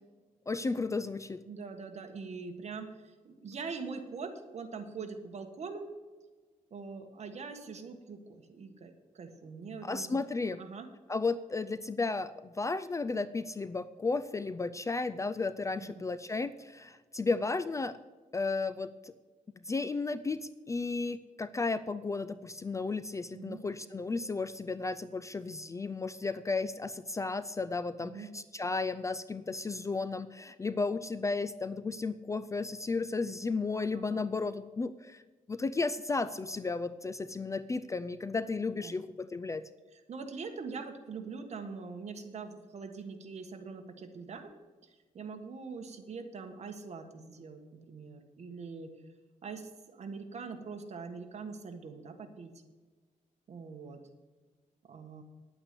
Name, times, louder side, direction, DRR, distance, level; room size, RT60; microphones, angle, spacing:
voice 1, 0.5-1.4 9.8-10.6 11.1-18.0 18.3-19.1 19.7-35.2 35.5-39.7, left 3 dB, 20° left, 14 dB, 0.4 m, -34 dB
voice 2, 1.5-5.9 6.7-10.2 10.6-10.9 15.8-16.0 23.3-23.6 28.0-28.3 33.9-34.3 38.8-39.0 39.9-44.5 45.1-48.9 49.4-52.5 53.5-54.0 54.9-55.2, right 4 dB, 50° right, 5 dB, 1.5 m, -43 dB
10.0 x 8.7 x 6.7 m, 1.4 s
wide cardioid pair, 135°, 14 cm